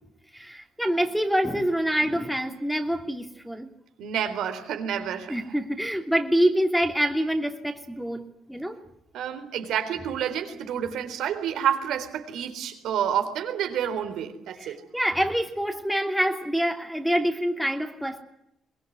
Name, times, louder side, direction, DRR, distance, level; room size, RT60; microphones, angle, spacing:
voice 1, 0.3-3.7 5.3-8.8 14.6-18.2, equal, ahead, 3 dB, 2.8 m, -26 dB
voice 2, 4.0-5.4 9.1-14.8, right 9 dB, 80° right, 7 dB, 3.9 m, -29 dB
23.0 x 20.5 x 9.5 m, 0.81 s
cardioid pair, 90°, 0 cm